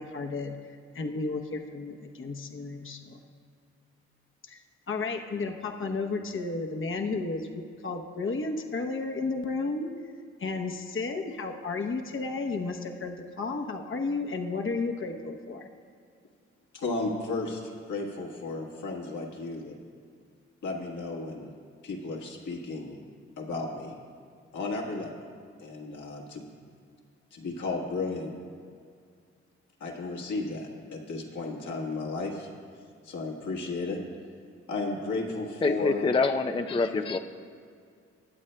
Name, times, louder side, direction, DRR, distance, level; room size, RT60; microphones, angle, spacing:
voice 1, 0.0-3.2 4.5-4.6 4.9-9.9 10.4-15.7, left 3 dB, 40° left, 3 dB, 0.9 m, -33 dB
voice 2, 16.7-19.8 20.6-21.5 21.8-23.0 23.4-24.0 24.5-25.1 25.6-26.5 27.3-28.3 29.8-32.5 33.0-34.0 34.7-36.1 36.9-37.0, left 3 dB, 70° left, -1 dB, 1.6 m, -34 dB
voice 3, 35.6-37.2, left 3 dB, 15° left, 7 dB, 0.5 m, -26 dB
21.0 x 8.4 x 2.2 m, 2.2 s
supercardioid pair, 45°, 31 cm